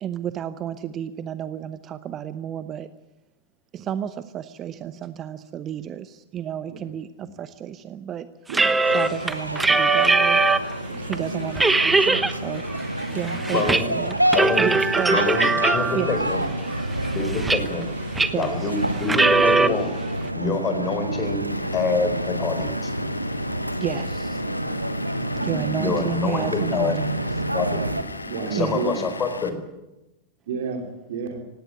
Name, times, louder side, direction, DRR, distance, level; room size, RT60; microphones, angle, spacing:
voice 1, 0.0-2.9 3.7-8.3 8.9-10.4 11.0-12.6 13.1-14.2 14.6-15.2 15.5-15.6 15.9-16.1 18.3-18.7 23.8-24.4 25.4-27.2 28.6-28.8, right 10 dB, 30° right, 14 dB, 0.9 m, -31 dB
sound 1, 8.5-10.7 11.1-11.2 11.6-12.3 12.7-13.8 14.1-16.2 16.7-17.8 18.2-18.5 19.0-19.7, right 3 dB, 10° right, 1.1 m, -20 dB
sound 2, 8.8-28.0, right 1 dB, 85° right, 1.3 m, -28 dB
voice 2, 10.9-11.2 13.0-13.4 25.3-26.1 28.2-29.0 30.5-31.4, right 4 dB, 55° right, 5 dB, 2.8 m, -32 dB
voice 3, 13.5-13.9 14.3-14.7 15.1-15.5 15.7-16.4 17.1-17.9 18.4-19.9 20.3-21.4 21.7-22.9 25.8-26.9 27.5-27.9 28.5-29.6, left 4 dB, 25° left, 7 dB, 4.3 m, -26 dB
Vehicle / Engine, 21.5-29.5, left 2 dB, 80° left, 1.5 m, -37 dB
18.5 x 17.0 x 9.7 m, 0.99 s
figure-of-eight pair, 90°, 0 cm